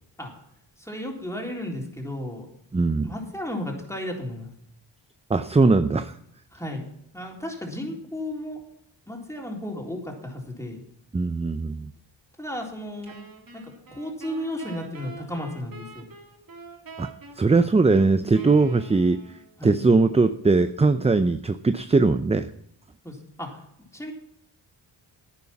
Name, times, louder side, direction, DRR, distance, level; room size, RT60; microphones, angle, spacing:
voice 1, 0.8-2.5 3.0-4.5 6.5-6.8 7.1-8.6 9.1-10.8 12.4-13.1 13.5-13.6 13.9-16.0 19.6-19.8 23.0-23.5 23.9-24.1, left 1 dB, 5° left, 0 dB, 3.8 m, -34 dB
voice 2, 2.7-3.1 5.3-6.2 11.1-11.9 17.0-19.2 19.6-22.5, right 3 dB, 15° right, 12 dB, 0.5 m, -20 dB
Wind instrument woodwind instrument, 13.1-19.6, right 3 dB, 45° right, 2.4 m, -45 dB
11.0 x 9.4 x 5.9 m, 0.73 s
cardioid pair, 60°, 46 cm